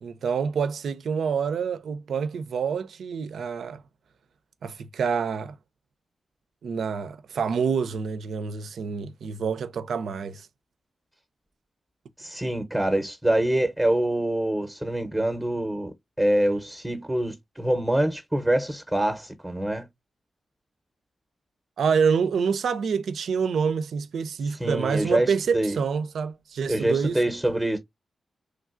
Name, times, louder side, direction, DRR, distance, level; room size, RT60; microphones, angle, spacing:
voice 1, 0.0-3.8 4.6-5.5 6.6-10.5 21.8-27.2, right 6 dB, 80° right, 0.4 m, -27 dB
voice 2, 12.2-15.9 16.2-19.9 24.6-25.8 26.7-27.8, right 1 dB, 10° right, 0.7 m, -25 dB
3.2 x 2.4 x 2.4 m
cardioid pair, 60°, 0 cm